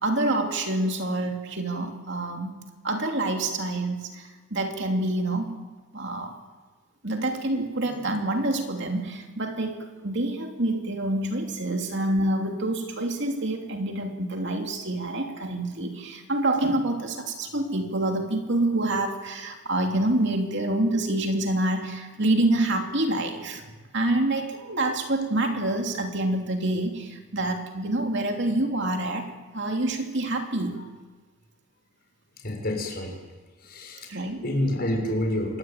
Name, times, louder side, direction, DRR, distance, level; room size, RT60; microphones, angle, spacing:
voice 1, 0.0-5.6 5.9-6.3 7.0-23.6 23.9-30.8 34.1-34.5, right 1 dB, 55° right, 3 dB, 3.0 m, -27 dB
voice 2, 32.4-33.1 33.6-34.1 34.4-35.6, left 1 dB, 45° left, 1 dB, 6.9 m, -28 dB
27.0 x 23.0 x 9.1 m, 1.3 s
head